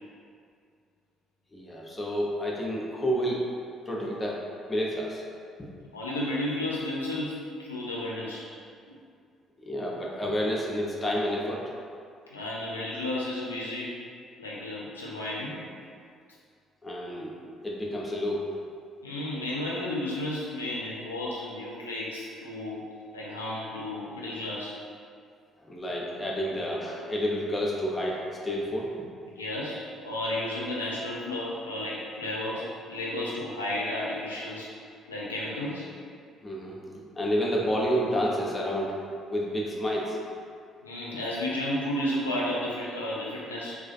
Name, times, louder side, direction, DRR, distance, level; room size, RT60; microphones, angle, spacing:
voice 1, 1.5-3.4 3.9-4.4 4.7-5.2 9.6-11.7 16.8-17.3 17.6-18.5 25.7-28.9 36.4-39.0 39.3-40.2, equal, 20° left, -3 dB, 0.5 m, -29 dB
voice 2, 5.9-8.5 8.9-9.0 12.3-13.9 14.4-15.6 19.0-22.8 23.1-24.8 29.4-34.7 35.1-35.9 40.8-43.8, left 1 dB, 80° left, -6 dB, 0.4 m, -32 dB
2.3 x 2.3 x 2.4 m, 2.3 s
figure-of-eight pair, 45°, 0 cm